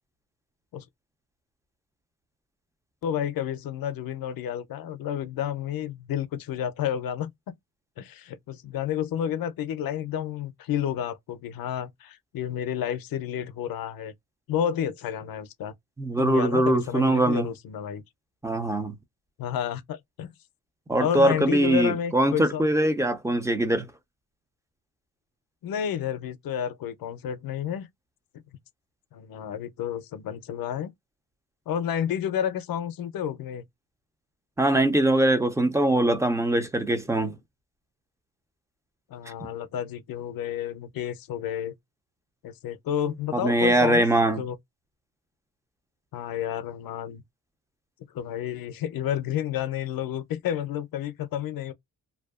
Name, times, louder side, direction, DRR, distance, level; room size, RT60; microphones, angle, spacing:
voice 1, 3.0-7.3 8.0-14.1 14.5-15.7 16.2-18.0 19.4-20.3 21.0-22.7 25.6-27.9 29.1-30.9 31.7-33.6 39.1-41.7 42.4-44.1 44.4-44.6 46.1-47.2 48.1-51.7, left 9 dB, 75° left, 0.5 m, -30 dB
voice 2, 16.0-17.5 18.4-19.0 20.9-23.9 34.6-37.4 43.3-44.4, right 1 dB, 10° right, 0.4 m, -22 dB
2.6 x 2.2 x 2.3 m
wide cardioid pair, 135°, 35 cm